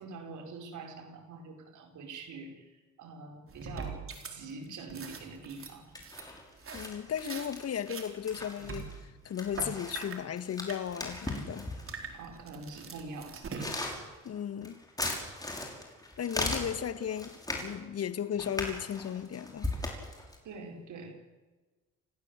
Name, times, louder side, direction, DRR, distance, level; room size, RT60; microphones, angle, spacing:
voice 1, 0.0-6.0 12.1-13.8 20.4-21.3, right 3 dB, 75° right, 5.0 m, -45 dB
sound 1, 3.5-4.3 4.6-7.5 7.8-10.3 10.7-10.8 11.1-11.4 11.8-14.0, right 4 dB, 45° right, 4.3 m, -43 dB
sound 2, 5.1-5.6 5.9-12.0 12.7-12.8 13.4-17.7 18.4-20.4, left 2 dB, 10° left, 5.8 m, -38 dB
voice 2, 6.7-11.7 14.2-14.8 16.2-19.7, left 9 dB, 55° left, 1.6 m, -35 dB
29.0 x 15.5 x 8.2 m
cardioid pair, 90°, 30 cm